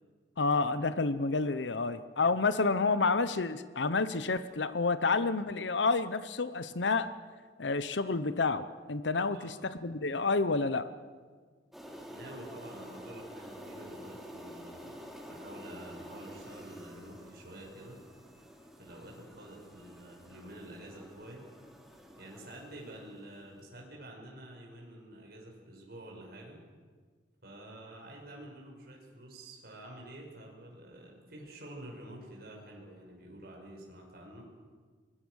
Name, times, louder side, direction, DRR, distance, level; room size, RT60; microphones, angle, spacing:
voice 1, 0.4-7.1 7.6-10.9, left 3 dB, 85° left, 13 dB, 0.9 m, -29 dB
sound 1, 11.7-23.5, equal, ahead, 3.1 m, -49 dB
voice 2, 12.1-18.0 18.8-21.4 22.2-26.6 27.4-34.4, right 1 dB, 60° right, 0 dB, 5.7 m, -49 dB
25.0 x 20.5 x 6.4 m, 1.5 s
head